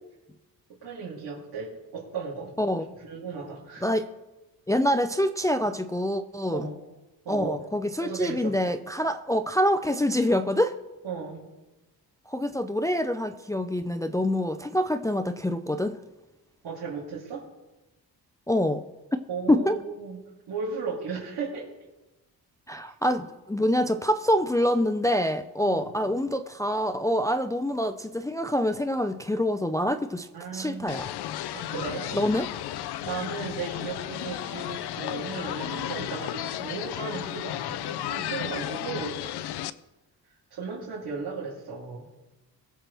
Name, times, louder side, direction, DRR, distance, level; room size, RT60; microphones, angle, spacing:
voice 1, 0.8-2.5 2.9-3.9 6.5-6.8 7.2-7.6 8.0-8.6 11.0-11.4 16.6-17.5 19.3-20.2 20.5-21.7 25.6-26.1 30.3-30.9 31.5-32.2 33.0-39.2 40.5-42.1, right 5 dB, 85° right, 3.2 m, -35 dB
voice 2, 4.7-6.7 7.3-10.7 12.3-16.0 18.5-18.8 19.5-19.8 22.7-30.3 30.5-31.1 32.1-32.5, left 1 dB, 10° left, 0.4 m, -26 dB
sound 1, 30.9-39.7, left 12 dB, 90° left, 0.6 m, -34 dB
21.5 x 7.5 x 3.4 m
cardioid pair, 140°, 39 cm